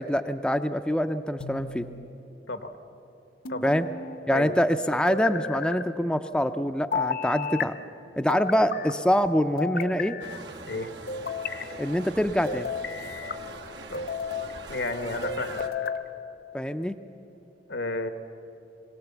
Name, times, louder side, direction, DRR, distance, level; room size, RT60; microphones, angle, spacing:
voice 1, 0.0-1.9 3.6-3.9 4.3-7.7 8.2-10.2 11.8-12.7 16.5-17.0, equal, 5° left, 8 dB, 0.4 m, -25 dB
sound 1, 1.4-2.1 3.4-4.2 5.1-5.8 6.9-7.7 8.3-8.9 9.6-10.4 11.1-11.7 12.5-13.4 13.9-14.5 15.2-16.0, left 5 dB, 55° left, 0.7 m, -33 dB
sound 2, 10.2-15.7, right 3 dB, 90° right, 1.3 m, -42 dB
voice 2, 14.7-15.7 17.7-18.1, left 2 dB, 85° left, 9 dB, 1.2 m, -32 dB
22.0 x 17.0 x 7.1 m, 3.0 s
head